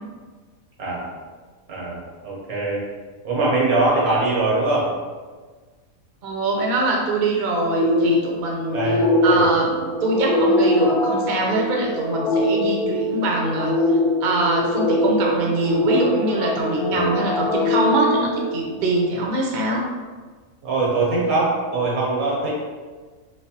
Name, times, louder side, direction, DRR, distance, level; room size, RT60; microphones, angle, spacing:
voice 1, 0.8-1.1 1.7-2.8 3.2-4.9 8.7-9.5 16.9-17.1 20.6-22.5, right 2 dB, 85° right, -4 dB, 1.5 m, -22 dB
voice 2, 6.2-13.7 14.2-19.8, right 2 dB, 50° right, -1 dB, 0.6 m, -23 dB
sound 1, 7.7-19.0, left 1 dB, 60° left, 0.4 m, -22 dB
3.2 x 3.1 x 2.8 m, 1.4 s
omnidirectional pair, 1.5 m